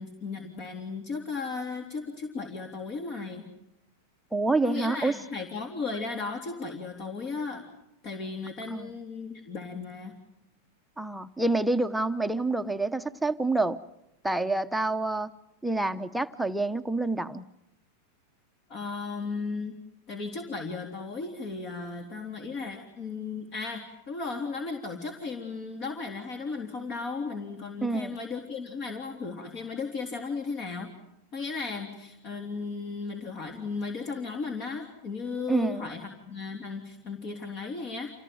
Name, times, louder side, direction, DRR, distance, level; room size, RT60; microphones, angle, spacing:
voice 1, 0.0-3.5 4.6-7.7 8.0-10.1 18.7-19.8 20.1-30.9 31.3-38.1, left 4 dB, 45° left, 4 dB, 3.5 m, -35 dB
voice 2, 4.3-5.1 8.7-8.9 11.0-13.8 14.2-15.3 15.6-17.4 27.8-28.2 35.5-35.9, right 2 dB, 5° right, 8 dB, 0.9 m, -27 dB
27.5 x 17.5 x 9.4 m, 0.87 s
hypercardioid pair, 110°, 0 cm